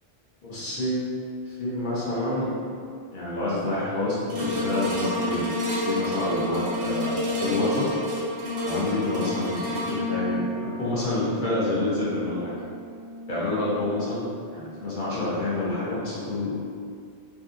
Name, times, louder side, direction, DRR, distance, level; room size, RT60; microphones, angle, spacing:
voice 1, 0.5-1.0 1.4-2.5 3.1-5.4 5.8-7.9 8.6-12.5 13.3-16.5, left 2 dB, 50° left, -8 dB, 0.7 m, -28 dB
sound 1, 4.3-14.7 15.2-15.3, left 1 dB, 55° right, 0.7 m, -30 dB
2.6 x 2.4 x 2.4 m, 2.3 s
omnidirectional pair, 1.3 m